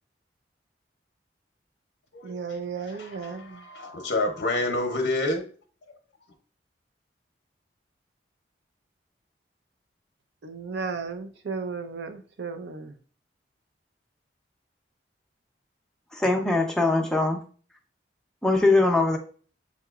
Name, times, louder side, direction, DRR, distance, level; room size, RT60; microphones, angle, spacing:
voice 1, 2.2-3.7 10.4-13.0, right 5 dB, 70° right, 0.5 m, -34 dB
voice 2, 3.2-5.4 5.9-6.0, left 2 dB, 65° left, 0.6 m, -28 dB
voice 3, 16.1-17.4 18.4-19.2, left 2 dB, 5° left, 0.5 m, -21 dB
6.8 x 2.9 x 2.3 m
head